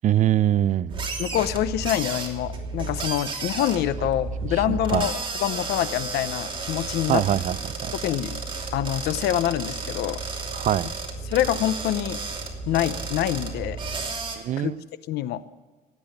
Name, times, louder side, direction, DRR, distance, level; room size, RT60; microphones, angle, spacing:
voice 1, 0.0-1.0 4.7-5.1 7.1-7.9 10.5-10.9 14.4-14.8, right 11 dB, 45° right, 19 dB, 0.5 m, -23 dB
sound 1, 0.9-14.4, right 4 dB, 30° right, 2.9 m, -32 dB
voice 2, 1.2-7.2 8.0-8.4 8.7-10.2 11.3-12.2 12.7-13.8 14.6-14.7 15.1-15.4, left 12 dB, 75° left, 15 dB, 0.8 m, -26 dB
18.5 x 8.7 x 6.6 m, 1.3 s
cardioid pair, 110°, 17 cm